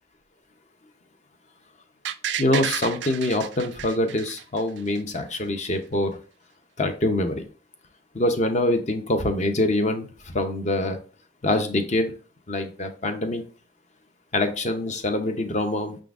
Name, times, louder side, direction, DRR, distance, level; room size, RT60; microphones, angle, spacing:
sound 1, 2.0-5.0 5.3-5.4, right 9 dB, 60° right, 0.3 m, -31 dB
voice 1, 2.4-6.1 6.8-7.4 8.1-11.0 11.4-12.1 12.5-13.4 14.3-16.0, left 1 dB, 35° left, 6 dB, 0.6 m, -24 dB
5.8 x 3.8 x 2.4 m, 0.38 s
head